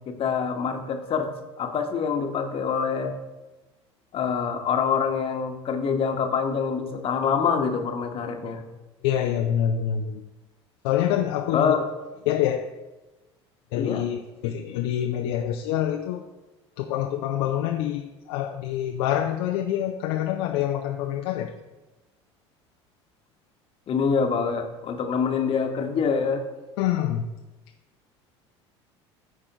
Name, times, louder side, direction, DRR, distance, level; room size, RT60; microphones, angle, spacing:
voice 1, 0.1-1.3 1.6-3.1 4.1-8.6 11.5-11.9 13.7-14.0 23.9-26.4, left 6 dB, 40° left, 4 dB, 1.2 m, -25 dB
voice 2, 9.0-10.2 10.8-11.7 12.3-12.6 13.7-16.2 16.8-21.5 26.8-27.3, left 11 dB, 60° left, 4 dB, 0.5 m, -26 dB
13.5 x 4.7 x 2.9 m, 1.1 s
figure-of-eight pair, 65°, 15 cm